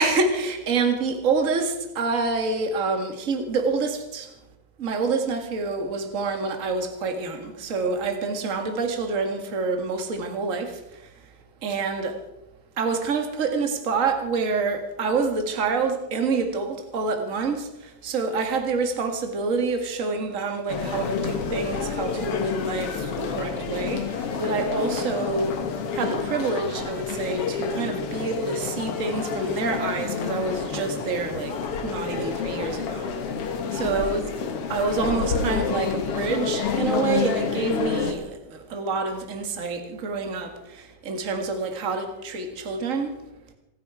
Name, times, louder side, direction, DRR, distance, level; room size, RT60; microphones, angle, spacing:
voice 1, 0.0-4.3 4.8-11.1 11.6-12.2 12.8-25.6 25.9-31.6 31.8-33.1 33.4-34.2 34.7-43.1, right 4 dB, 30° right, 5 dB, 1.7 m, -27 dB
sound 1, 20.7-38.1, left 5 dB, 55° left, 2.2 m, -29 dB
28.0 x 9.5 x 4.9 m, 0.92 s
omnidirectional pair, 3.6 m